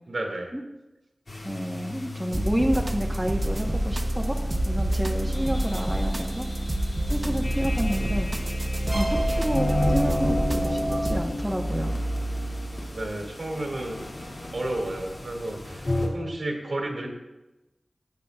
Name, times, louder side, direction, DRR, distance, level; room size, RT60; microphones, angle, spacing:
voice 1, 0.1-0.5 5.7-5.8 7.9-8.2 12.9-14.0 14.5-17.1, right 1 dB, 75° right, 0 dB, 2.1 m, -32 dB
sound 1, 1.3-16.1, left 1 dB, 60° left, 2.2 m, -33 dB
voice 2, 1.4-4.4 4.7-6.5 7.1-8.3 8.9-11.9, equal, 10° right, 1 dB, 0.9 m, -29 dB
sound 2, 2.3-11.2, right 1 dB, 35° right, 0.8 m, -27 dB
15.5 x 8.3 x 2.3 m, 1.0 s
wide cardioid pair, 75°, 0 cm